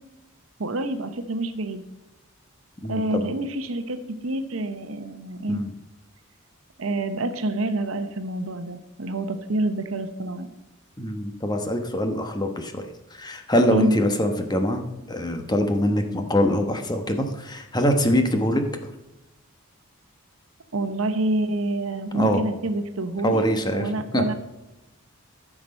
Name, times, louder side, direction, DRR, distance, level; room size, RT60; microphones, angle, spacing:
voice 1, 0.6-1.8 2.9-5.6 6.8-10.5 13.6-14.0 20.7-24.3, right 1 dB, 75° right, 9 dB, 0.9 m, -27 dB
voice 2, 2.8-3.3 5.5-5.7 11.0-18.6 22.1-22.4 23.2-24.2, equal, 20° left, 5 dB, 1.1 m, -24 dB
14.0 x 6.0 x 5.4 m, 0.96 s
head